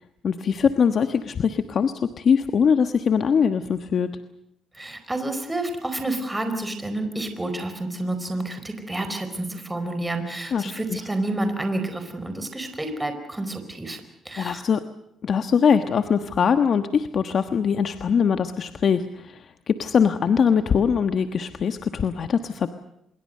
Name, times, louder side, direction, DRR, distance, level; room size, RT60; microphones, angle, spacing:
voice 1, 0.2-4.1 10.5-11.0 14.4-14.8 15.2-22.7, left 6 dB, 55° left, 9 dB, 1.3 m, -22 dB
voice 2, 4.7-14.6, right 2 dB, 15° right, 7 dB, 4.7 m, -29 dB
26.0 x 22.0 x 6.7 m, 0.80 s
cardioid pair, 90°, 0 cm